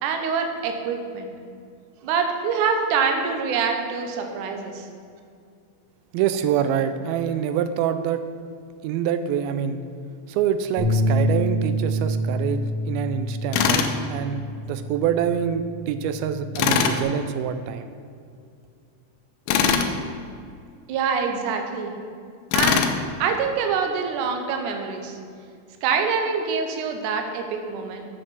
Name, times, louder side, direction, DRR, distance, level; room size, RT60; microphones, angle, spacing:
voice 1, 0.0-1.3 2.0-4.9 20.9-21.9 22.5-22.9 23.2-25.2 25.8-28.0, right 5 dB, 70° right, 4 dB, 2.2 m, -25 dB
voice 2, 6.1-8.2 8.8-9.8 10.3-17.9, right 8 dB, 90° right, 10 dB, 2.4 m, -26 dB
Bass guitar, 10.8-15.2 15.6-17.0, equal, 55° right, 2.9 m, -27 dB
Tools, 13.5-13.9 16.6-17.0 19.5-19.9 22.5-23.0, left 7 dB, 85° left, 2.6 m, -20 dB
8.1 x 6.5 x 7.3 m, 2.4 s
omnidirectional pair, 4.2 m